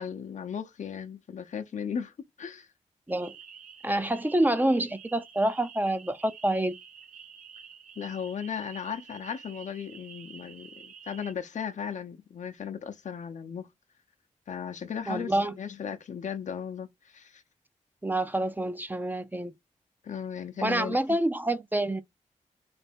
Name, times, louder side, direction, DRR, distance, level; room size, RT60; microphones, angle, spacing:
voice 1, 0.0-2.1 2.4-2.7 8.0-13.7 14.5-17.4 20.0-21.2, left 7 dB, 65° left, 0.7 m, -36 dB
sound 1, 3.1-11.3, right 7 dB, 90° right, 0.7 m, -49 dB
voice 2, 3.8-6.7 15.1-15.5 18.0-19.5 20.6-22.0, right 1 dB, 15° right, 0.5 m, -27 dB
3.4 x 3.2 x 4.4 m
cardioid pair, 60°, 13 cm